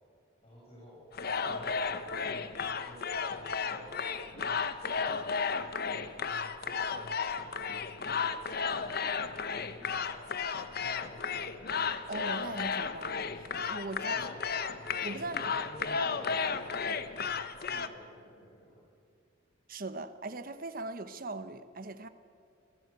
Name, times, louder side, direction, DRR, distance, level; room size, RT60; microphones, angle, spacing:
voice 1, 0.4-1.1 1.4-2.3 2.7-3.3 3.6-5.4 6.6-9.3 9.7-10.3 10.8-11.7 14.1-14.7 15.1-18.9, equal, 30° left, -6 dB, 6.5 m, -52 dB
sound 1, 1.1-17.9, left 5 dB, 50° left, 1.0 m, -34 dB
voice 2, 12.1-14.1 15.0-15.4 19.7-22.1, right 2 dB, 45° right, 11 dB, 1.2 m, -40 dB
28.0 x 16.5 x 8.3 m, 2.4 s
head